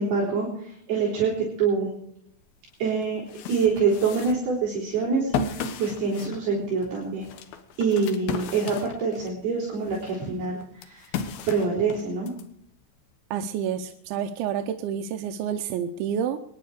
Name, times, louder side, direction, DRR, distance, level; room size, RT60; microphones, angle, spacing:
voice 1, 0.0-1.3 1.6-1.9 2.8-7.3 7.8-11.2 11.5-12.3, right 5 dB, 60° right, -6 dB, 5.5 m, -26 dB
sound 1, 2.5-2.6 3.0-9.4 9.8-12.4, left 5 dB, 65° left, 2.7 m, -35 dB
voice 2, 13.3-16.4, right 8 dB, 80° right, 5 dB, 3.0 m, -29 dB
25.5 x 10.5 x 4.9 m, 0.69 s
omnidirectional pair, 5.5 m